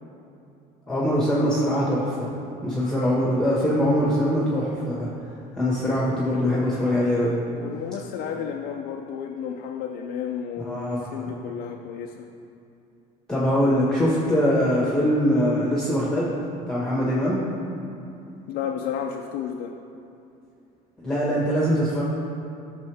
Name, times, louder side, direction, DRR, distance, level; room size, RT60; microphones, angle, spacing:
voice 1, 0.9-5.1 5.5-7.4 10.6-11.3 13.3-16.4 16.7-17.4 21.0-22.0, equal, 5° left, -7 dB, 1.6 m, -23 dB
voice 2, 7.6-12.3 18.5-19.7, left 8 dB, 75° left, 1 dB, 0.6 m, -32 dB
13.5 x 6.7 x 3.5 m, 2.7 s
cardioid pair, 125°, 16 cm